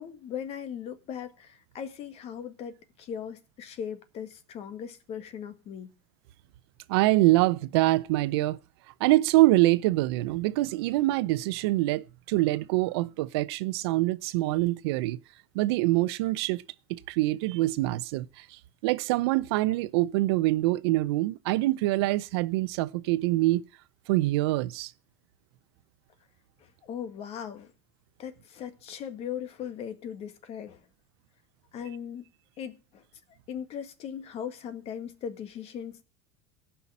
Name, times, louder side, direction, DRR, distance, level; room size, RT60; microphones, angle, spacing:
voice 1, 0.0-5.9 26.8-27.7 28.2-30.8 31.7-32.2 32.6-33.0 33.5-36.0, left 8 dB, 50° left, 1.9 m, -38 dB
voice 2, 6.9-8.6 9.0-15.2 15.5-16.6 16.9-23.6 24.1-24.9, right 18 dB, 75° right, 0.7 m, -25 dB
15.5 x 5.8 x 8.4 m
supercardioid pair, 100°, 13 cm